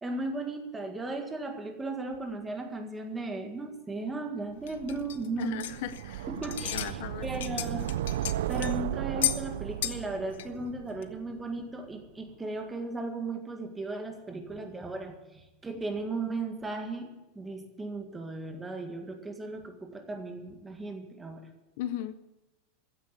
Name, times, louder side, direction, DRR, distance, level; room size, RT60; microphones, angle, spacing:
voice 1, 0.0-5.7 6.3-7.9 8.5-17.1 17.4-21.4, right 2 dB, 10° right, 5 dB, 1.8 m, -36 dB
sound 1, 4.7-6.1 6.4-6.9 7.2-8.8 9.2-9.4 9.8-10.1 10.3-10.4 11.0-11.1, left 13 dB, 85° left, 1.2 m, -33 dB
sound 2, 4.7-11.7, right 12 dB, 85° right, 0.5 m, -35 dB
voice 2, 5.4-6.3 6.7-7.3 21.8-22.1, left 12 dB, 55° left, 13 dB, 0.8 m, -36 dB
15.0 x 10.5 x 8.3 m, 1.0 s
supercardioid pair, 170°, 0 cm